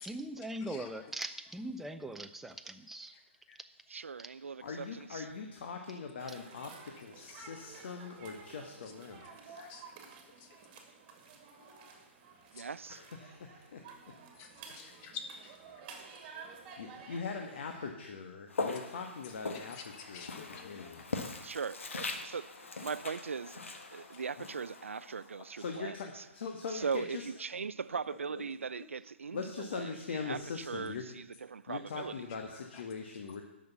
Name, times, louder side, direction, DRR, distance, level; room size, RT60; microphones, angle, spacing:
voice 1, 0.0-3.2 4.2-4.3, right 1 dB, 5° right, 0.5 m, -41 dB
voice 2, 0.6-1.1 3.1-3.2 3.5-3.6 7.2-8.0 8.8-8.9 9.2-9.3 9.5-10.9 11.2-11.8 12.5-12.7 14.3-16.3 19.2-21.6 23.9-24.2 25.4-26.0 32.3-32.8, left 6 dB, 30° left, 1.4 m, -52 dB
voice 3, 3.9-5.2 12.5-13.0 21.4-23.6 23.9-26.0 26.7-30.4 30.7-31.2 31.5-32.1, right 5 dB, 80° right, 0.4 m, -39 dB
voice 4, 4.6-9.6 12.9-13.8 14.7-14.8 16.8-19.8 20.1-21.0 24.4-24.5 25.5-27.3 28.1-28.4 28.7-28.9 29.3-31.0 31.7-33.4, left 5 dB, 55° left, 1.4 m, -42 dB
sound 1, 6.2-17.9, right 5 dB, 25° right, 2.2 m, -52 dB
Walk footsteps, 18.5-25.6, left 3 dB, 75° left, 1.4 m, -41 dB
11.0 x 6.5 x 7.2 m
hypercardioid pair, 140°, 7 cm